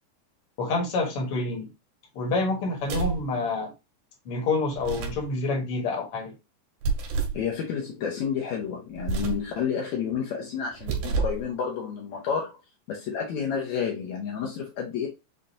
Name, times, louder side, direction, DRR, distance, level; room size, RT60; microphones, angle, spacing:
voice 1, 0.6-1.7 2.1-3.7 4.2-6.3, left 3 dB, 55° left, 1.6 m, -27 dB
sound 1, 2.8-3.3 4.7-5.3 6.8-7.4 9.0-9.5 10.7-11.5, right 4 dB, 90° right, 3.2 m, -29 dB
voice 2, 7.3-12.6 12.9-15.1, left 7 dB, 85° left, 1.6 m, -30 dB
7.3 x 2.5 x 2.8 m
omnidirectional pair, 4.6 m